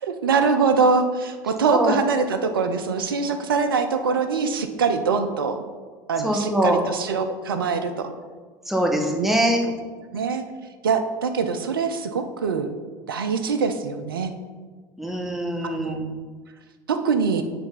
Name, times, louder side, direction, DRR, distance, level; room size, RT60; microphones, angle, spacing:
voice 1, 0.0-5.6 6.1-8.1 9.2-9.3 9.6-9.7 10.1-10.4 10.8-12.7 13.1-14.3 15.6-16.2 16.9-17.4, right 5 dB, 90° right, 8 dB, 0.6 m, -23 dB
voice 2, 6.2-6.8 8.7-9.6 15.0-16.0, right 1 dB, ahead, 1 dB, 1.5 m, -23 dB
8.9 x 3.4 x 5.5 m, 1.4 s
hypercardioid pair, 80°, 11 cm